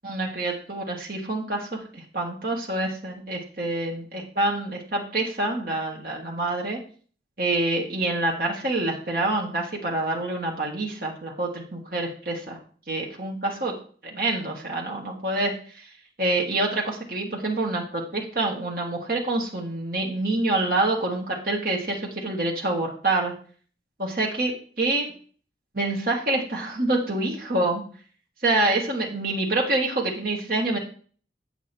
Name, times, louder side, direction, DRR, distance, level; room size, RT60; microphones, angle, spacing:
voice 1, 0.0-6.8 7.4-12.6 12.9-13.7 14.0-15.6 16.2-23.3 24.0-25.1 25.7-27.8 28.4-30.8, right 2 dB, 50° right, -1 dB, 1.7 m, -26 dB
8.1 x 7.3 x 4.4 m, 0.43 s
head